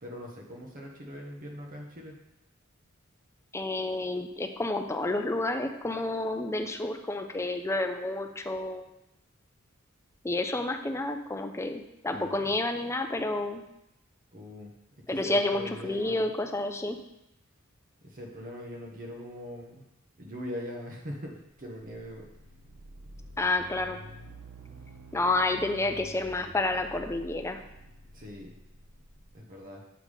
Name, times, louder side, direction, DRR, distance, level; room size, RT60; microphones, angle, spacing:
voice 1, 0.0-2.2 12.1-12.5 14.3-14.7 15.1-16.2 18.0-19.8 20.2-22.3 28.1-28.5 29.3-29.8, equal, 45° right, -1 dB, 1.1 m, -41 dB
voice 2, 3.5-8.8 10.2-13.6 15.1-17.0 23.4-24.0 25.1-27.6, left 2 dB, 15° left, 6 dB, 0.5 m, -30 dB
sound 1, 21.5-29.3, right 1 dB, 85° right, 0.9 m, -49 dB
7.9 x 3.6 x 4.9 m, 0.85 s
head